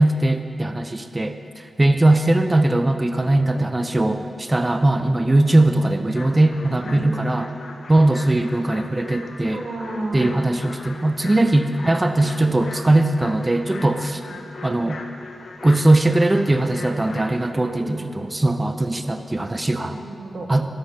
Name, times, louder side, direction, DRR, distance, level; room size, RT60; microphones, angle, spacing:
voice 1, 0.0-7.5 7.9-9.6 10.1-14.2 14.6-15.0 15.6-20.0 20.5-20.7, right 2 dB, 25° right, 8 dB, 0.5 m, -20 dB
sound 1, 6.1-17.5, left 3 dB, 75° left, 0.9 m, -39 dB
voice 2, 6.8-7.1 9.5-10.4 14.0-14.4 17.6-18.0 18.8-19.3 19.8-20.5, right 2 dB, 70° right, 1 dB, 1.6 m, -33 dB
12.0 x 8.8 x 5.7 m, 2.5 s
cardioid pair, 65°, 0 cm